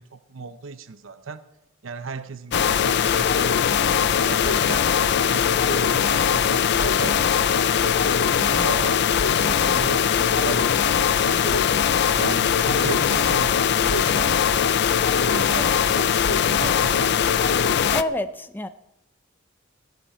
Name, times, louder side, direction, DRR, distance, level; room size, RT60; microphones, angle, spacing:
voice 1, 0.0-1.4 1.8-4.9 5.2-7.5 7.8-11.7 12.2-14.7 15.2-17.2, right 4 dB, 85° right, 11 dB, 0.7 m, -36 dB
sound 1, 2.5-18.0, left 7 dB, 60° left, 0.5 m, -20 dB
voice 2, 9.5-9.8 17.9-18.7, left 1 dB, 10° left, 10 dB, 0.7 m, -28 dB
15.5 x 11.5 x 4.4 m, 0.85 s
head